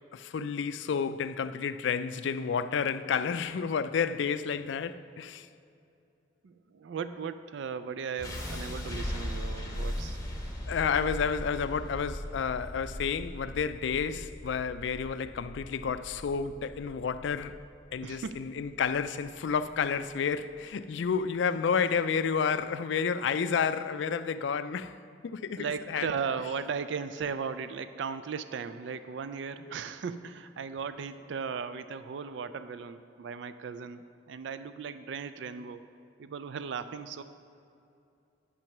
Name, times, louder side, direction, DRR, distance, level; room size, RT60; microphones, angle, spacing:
voice 1, 0.1-5.5 10.7-17.6 17.9-26.1 29.6-29.8, left 6 dB, 70° left, 0.3 m, -30 dB
voice 2, 6.4-10.2 18.0-18.5 25.6-35.9 36.2-37.2, right 6 dB, 65° right, 0.3 m, -37 dB
sound 1, 8.2-20.2, equal, 15° left, 1.0 m, -39 dB
9.6 x 6.0 x 5.9 m
head